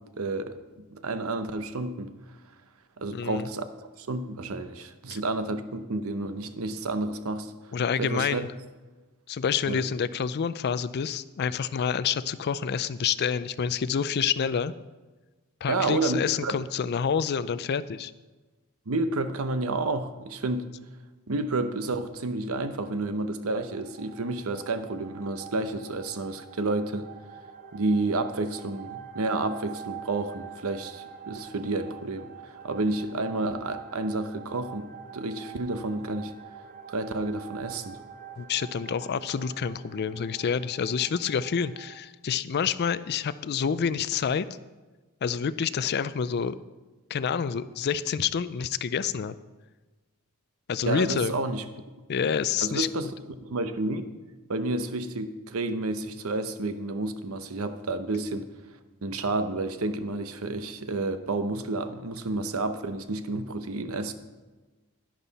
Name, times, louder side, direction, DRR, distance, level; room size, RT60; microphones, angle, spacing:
voice 1, 0.2-2.1 3.0-7.5 8.0-8.4 9.7-9.8 15.7-16.6 18.9-20.7 21.3-27.1 27.7-36.3 36.9-38.0 50.9-51.6 52.6-54.1 54.5-58.5 59.0-64.1, right 2 dB, 70° right, 10 dB, 0.8 m, -30 dB
voice 2, 3.1-3.5 5.1-5.2 7.7-8.5 9.3-14.7 15.6-18.1 38.4-44.5 45.2-46.6 47.1-49.3 50.7-51.3 52.1-53.1, left 7 dB, 50° left, 15 dB, 0.4 m, -28 dB
sound 1, 23.7-42.0, right 8 dB, 40° right, 0.8 m, -45 dB
11.0 x 10.5 x 4.1 m, 1.2 s
head